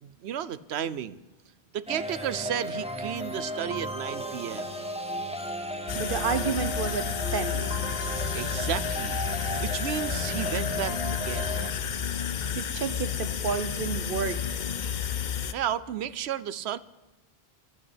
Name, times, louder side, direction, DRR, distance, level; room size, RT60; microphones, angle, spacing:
voice 1, 0.0-1.2 1.7-4.7 8.3-9.2 9.6-11.5 15.5-16.8, right 10 dB, 85° right, 17 dB, 0.9 m, -33 dB
sound 1, 1.9-11.7, equal, 5° right, 1.4 m, -35 dB
sound 2, 5.9-15.5, left 8 dB, 50° left, 0.7 m, -31 dB
voice 2, 5.9-7.7 12.5-14.4, right 5 dB, 55° right, 11 dB, 1.2 m, -30 dB
12.5 x 9.0 x 9.9 m, 1.1 s
omnidirectional pair, 1.1 m